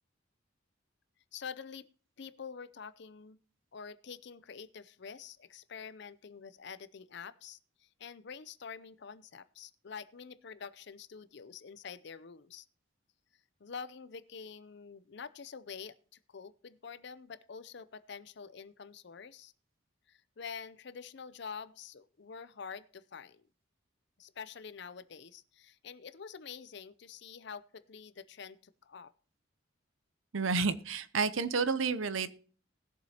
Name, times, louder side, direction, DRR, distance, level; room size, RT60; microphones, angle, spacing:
voice 1, 1.3-1.9 2.2-3.4 3.7-12.7 13.6-19.5 20.1-23.5 24.2-29.1, left 6 dB, 55° left, 16 dB, 0.5 m, -47 dB
voice 2, 30.3-32.3, right 4 dB, 70° right, 14 dB, 0.7 m, -30 dB
19.5 x 7.2 x 2.8 m, 0.42 s
head